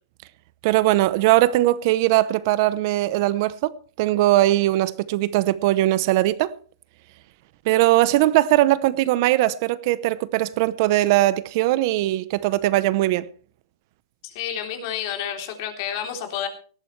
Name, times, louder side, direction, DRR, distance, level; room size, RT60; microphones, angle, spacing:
voice 1, 0.6-6.5 7.7-13.3, right 16 dB, 45° right, 0.8 m, -20 dB
voice 2, 14.2-16.5, left 9 dB, 50° left, 3.5 m, -30 dB
18.5 x 13.0 x 3.3 m
hypercardioid pair, 150°, 2 cm